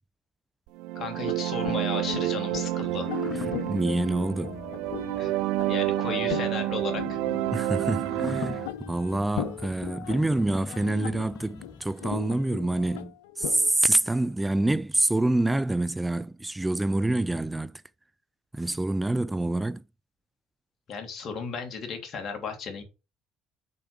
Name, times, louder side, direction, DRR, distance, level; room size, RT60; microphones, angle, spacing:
sound 1, 0.8-8.7, right 15 dB, 75° right, 0.4 m, -29 dB
voice 1, 0.9-3.1 5.2-5.3 5.7-7.2 20.9-22.8, left 5 dB, 55° left, 3.0 m, -34 dB
sound 2, 1.3-13.7, left 10 dB, 85° left, 0.7 m, -39 dB
sound 3, 1.5-11.9, left 5 dB, 30° left, 0.6 m, -43 dB
voice 2, 3.5-4.6 7.5-17.8 18.5-19.8, right 2 dB, 10° right, 0.4 m, -27 dB
6.8 x 4.8 x 5.9 m
hypercardioid pair, 70°, 0 cm